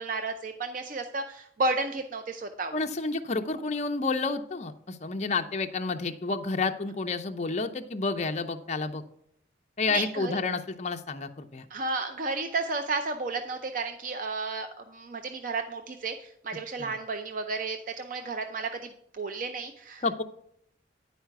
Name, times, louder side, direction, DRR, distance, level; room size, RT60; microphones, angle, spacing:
voice 1, 0.0-2.8 9.9-10.3 11.7-20.2, right 3 dB, 45° right, 7 dB, 0.5 m, -32 dB
voice 2, 2.7-9.0 9.8-11.6 16.8-16.9 20.0-20.2, left 3 dB, 35° left, 6 dB, 0.6 m, -30 dB
10.5 x 4.8 x 4.6 m, 0.71 s
head